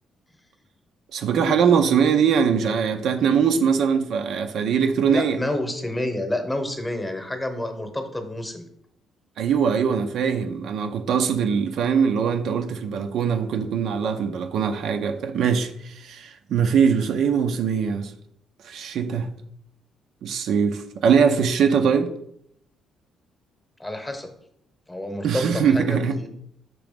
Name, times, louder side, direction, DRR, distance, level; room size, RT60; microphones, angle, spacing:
voice 1, 1.1-5.4 9.4-18.1 18.6-19.3 20.2-22.1 25.2-26.2, right 6 dB, 70° right, 0.5 m, -22 dB
voice 2, 5.1-8.7 23.8-24.3 24.9-26.3, left 1 dB, 10° left, 1.0 m, -29 dB
6.1 x 3.0 x 5.1 m
cardioid pair, 105°, 0 cm